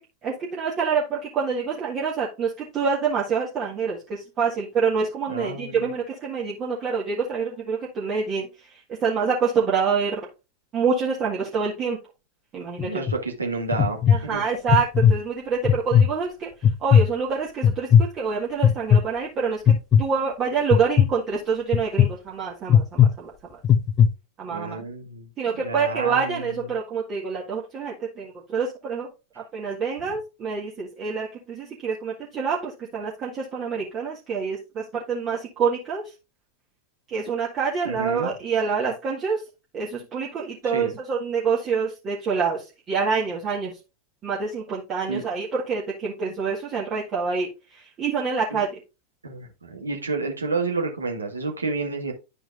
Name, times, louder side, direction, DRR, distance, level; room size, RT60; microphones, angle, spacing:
voice 1, 0.2-10.2 10.7-12.0 12.5-13.0 14.1-16.5 16.8-19.7 20.0-23.3 24.4-24.8 25.4-29.1 29.5-36.0 37.1-39.4 39.7-43.7 44.2-48.7, right 5 dB, 30° right, 1.8 m, -26 dB
voice 2, 5.3-5.9 12.8-14.4 24.5-25.3 25.6-26.6 37.8-38.3 40.6-40.9 45.1-45.2 48.5-48.6 49.2-52.1, right 3 dB, 75° right, 1.6 m, -30 dB
sound 1, 12.8-13.2 13.7-14.2 14.7-15.1 15.6-16.1 16.6-17.1 17.6-18.1 18.6-19.0 19.7-20.0 20.7-21.1 21.7-22.1 22.7-23.1 23.6-24.1, left 8 dB, 25° left, 0.8 m, -15 dB
11.5 x 4.5 x 2.5 m
figure-of-eight pair, 90°, 0 cm